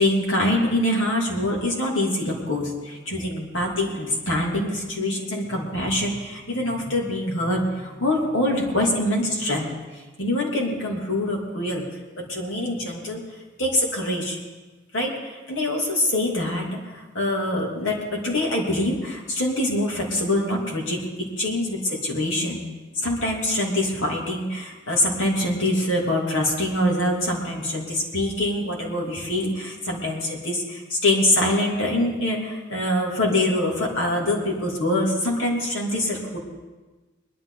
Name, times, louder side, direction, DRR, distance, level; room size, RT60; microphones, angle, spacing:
voice 1, 0.0-9.7 10.2-11.8 12.2-13.2 13.6-14.4 14.9-21.1 21.4-22.6 22.9-36.4, left 1 dB, 85° left, -1 dB, 3.0 m, -24 dB
20.5 x 11.5 x 4.2 m, 1.2 s
head